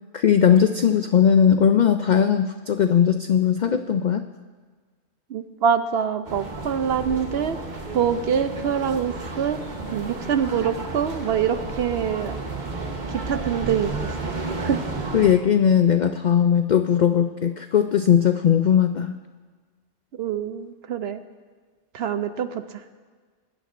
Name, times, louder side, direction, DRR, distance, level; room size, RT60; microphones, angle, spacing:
voice 1, 0.1-4.3 15.1-19.1, left 8 dB, 85° left, 8 dB, 0.4 m, -19 dB
voice 2, 5.3-7.6 7.9-9.6 9.9-12.4 13.1-13.9 14.6-14.8 20.2-21.2 21.9-22.8, right 8 dB, 60° right, 10 dB, 0.7 m, -25 dB
sound 1, 6.2-15.3, right 3 dB, 40° right, 1.2 m, -32 dB
22.0 x 11.5 x 2.6 m, 1.5 s
omnidirectional pair, 1.3 m